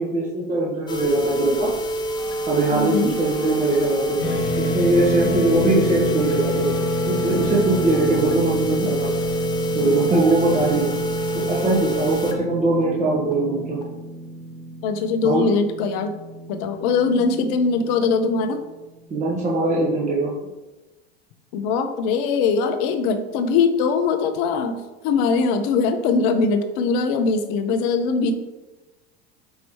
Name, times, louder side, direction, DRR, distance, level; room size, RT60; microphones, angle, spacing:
voice 1, 0.0-1.7 2.5-4.2 4.6-6.7 7.1-9.1 9.7-10.9 11.3-13.8 15.2-15.5 19.1-20.3, right 2 dB, 25° right, -5 dB, 1.0 m, -21 dB
sound 1, 0.9-12.3 12.8-12.9 13.3-13.4 13.8-13.9, right 1 dB, 15° left, 0.6 m, -27 dB
voice 2, 2.7-3.1 14.8-16.1 16.5-18.6 21.5-28.3, left 4 dB, 55° left, 7 dB, 0.6 m, -21 dB
sound 2, 4.2-18.6, left 1 dB, 75° left, 1.4 m, -29 dB
5.4 x 2.9 x 3.2 m, 1.1 s
hypercardioid pair, 85°, 32 cm